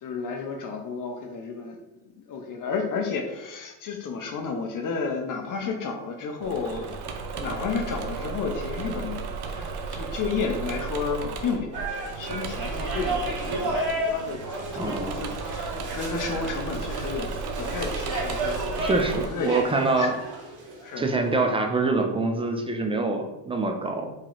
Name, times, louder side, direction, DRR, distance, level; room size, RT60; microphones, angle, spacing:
voice 1, 0.0-1.8 2.3-7.0 7.3-9.2 9.5-11.7 12.1-14.4 14.7-17.3 17.6-18.6 19.3-19.7 20.0-20.2 20.8-21.1, left 5 dB, 40° left, 4 dB, 0.6 m, -32 dB
Engine / Mechanisms, 6.4-19.3, right 4 dB, 55° right, 0.7 m, -34 dB
sound 1, 11.7-21.4, right 1 dB, 40° right, 1.4 m, -33 dB
voice 2, 14.7-15.3 18.8-20.1 21.0-24.1, right 3 dB, 15° right, 3 dB, 0.3 m, -25 dB
3.1 x 2.8 x 3.8 m, 0.98 s
supercardioid pair, 95°, 48 cm